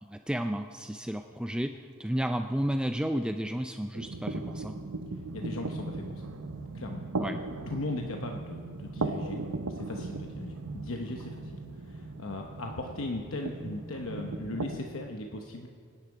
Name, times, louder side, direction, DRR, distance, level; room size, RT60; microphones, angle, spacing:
voice 1, 0.1-4.7 7.2-7.4, equal, 5° right, 6 dB, 0.4 m, -32 dB
sound 1, 3.9-14.8, right 2 dB, 85° right, 0.9 m, -37 dB
voice 2, 5.3-6.3 6.7-7.0 7.7-11.6 11.8-15.7, left 2 dB, 65° left, 3 dB, 1.0 m, -38 dB
25.5 x 10.0 x 4.8 m, 2.1 s
head